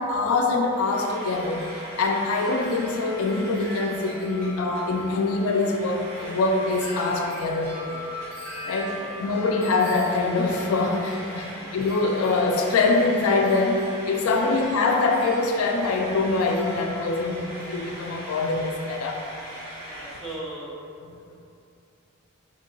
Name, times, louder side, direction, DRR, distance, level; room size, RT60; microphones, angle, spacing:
voice 1, 0.0-8.0 8.7-19.2, left 3 dB, 75° left, 2 dB, 0.3 m, -24 dB
Frying (food), 0.6-20.4, right 1 dB, 85° right, 1.3 m, -41 dB
Wind chime, 1.1-17.9, equal, 55° right, 0.7 m, -42 dB
voice 2, 8.9-9.2 11.5-11.7 14.4-14.6 19.8-20.8 21.1-21.4, right 1 dB, ahead, -8 dB, 0.5 m, -39 dB
3.7 x 2.7 x 2.5 m, 2.6 s
head